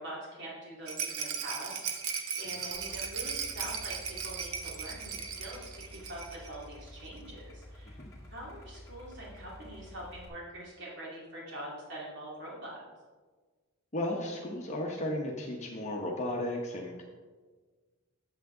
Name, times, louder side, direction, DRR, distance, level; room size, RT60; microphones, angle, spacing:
voice 1, 0.0-8.0 8.2-12.8, right 1 dB, 55° right, -4 dB, 2.5 m, -44 dB
Rattle, 0.9-6.6 6.8-6.9 7.2-7.3, right 6 dB, 80° right, 0.8 m, -37 dB
Idling, 2.7-10.3, left 1 dB, 15° left, 1.7 m, -50 dB
voice 2, 13.9-17.0, left 1 dB, 30° left, -1 dB, 0.9 m, -34 dB
8.4 x 7.3 x 3.8 m, 1.4 s
head